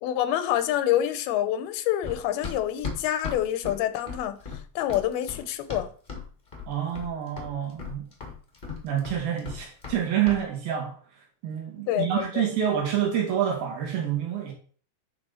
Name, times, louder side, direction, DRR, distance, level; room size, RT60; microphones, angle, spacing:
voice 1, 0.0-4.4 4.8-5.9 11.9-12.4, left 12 dB, 90° left, 2.8 m, -27 dB
Run, 2.0-6.3 6.5-7.1 7.4-10.0 10.3-10.4, left 5 dB, 25° left, 1.1 m, -36 dB
voice 2, 6.7-8.1 8.8-11.0 11.4-14.5, right 9 dB, 75° right, 4.1 m, -27 dB
10.5 x 5.4 x 4.3 m
omnidirectional pair, 4.3 m